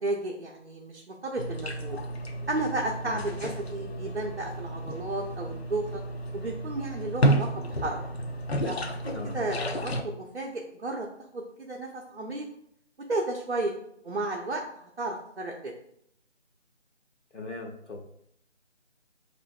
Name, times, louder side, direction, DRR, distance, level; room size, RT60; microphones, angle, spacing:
voice 1, 0.0-2.0 2.5-6.0 6.3-8.0 8.6-11.1 11.3-12.5 13.1-13.7 14.0-15.7, right 2 dB, 55° right, -1 dB, 0.6 m, -33 dB
sound 1, 1.4-10.0, right 1 dB, 60° left, 0.5 m, -31 dB
voice 2, 17.3-18.1, left 3 dB, 80° left, 0 dB, 1.0 m, -39 dB
5.2 x 2.5 x 2.3 m, 0.73 s
figure-of-eight pair, 170°, 36 cm